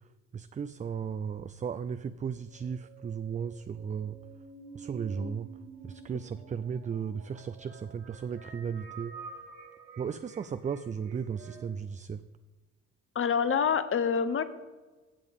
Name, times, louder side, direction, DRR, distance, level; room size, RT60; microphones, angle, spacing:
voice 1, 0.3-4.2 4.7-5.5 5.8-9.2 10.0-12.2, right 7 dB, 25° right, 13 dB, 0.4 m, -35 dB
sound 1, 2.0-11.7, right 4 dB, 75° right, 2.4 m, -49 dB
voice 2, 13.1-14.4, left 6 dB, 45° left, 12 dB, 0.9 m, -26 dB
16.0 x 6.9 x 3.6 m, 1.3 s
cardioid pair, 90°, 30 cm